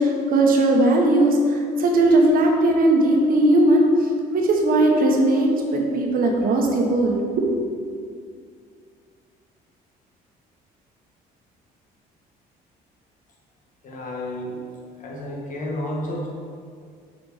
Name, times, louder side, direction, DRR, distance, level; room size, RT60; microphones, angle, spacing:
voice 1, 0.0-7.5, right 1 dB, 60° right, 1 dB, 1.2 m, -18 dB
voice 2, 13.8-14.7 15.0-16.3, left 1 dB, 50° left, -2 dB, 1.5 m, -31 dB
6.5 x 4.3 x 4.9 m, 2.2 s
cardioid pair, 110°, 17 cm